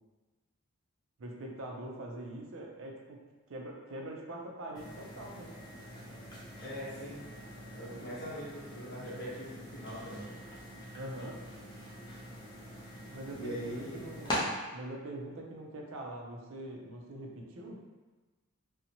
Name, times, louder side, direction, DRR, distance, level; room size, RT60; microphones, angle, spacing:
voice 1, 1.2-3.2 3.5-5.5 10.9-11.4 13.1-17.8, right 1 dB, 60° right, 0 dB, 0.4 m, -43 dB
sound 1, 4.8-14.4, equal, 20° left, 0.5 m, -44 dB
voice 2, 6.6-7.2 7.8-10.3 13.3-14.1, equal, 50° left, -8 dB, 0.9 m, -41 dB
2.6 x 2.0 x 2.8 m, 1.2 s
head